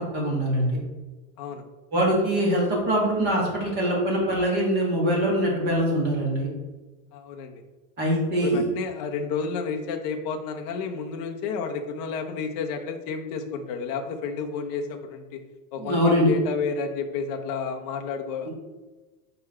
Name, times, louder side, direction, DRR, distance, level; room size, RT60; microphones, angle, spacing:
voice 1, 0.1-0.8 1.9-6.5 8.0-8.6 15.8-16.3, equal, 20° right, -3 dB, 1.8 m, -23 dB
voice 2, 7.1-7.6 8.4-15.4 15.7-18.5, left 5 dB, 30° left, 3 dB, 0.5 m, -31 dB
6.7 x 4.8 x 4.3 m, 1.2 s
supercardioid pair, 175°, 47 cm